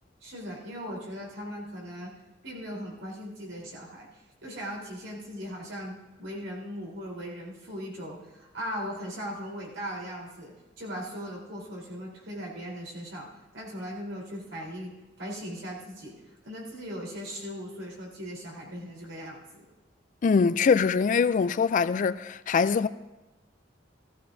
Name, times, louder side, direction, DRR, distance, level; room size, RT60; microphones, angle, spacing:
voice 1, 0.2-2.1 2.4-4.1 4.4-13.3 13.5-14.9 15.2-16.1 16.4-19.6, equal, 85° right, 3.8 m, -38 dB
voice 2, 20.2-22.9, left 5 dB, 45° left, 0.3 m, -23 dB
16.5 x 14.0 x 2.7 m
head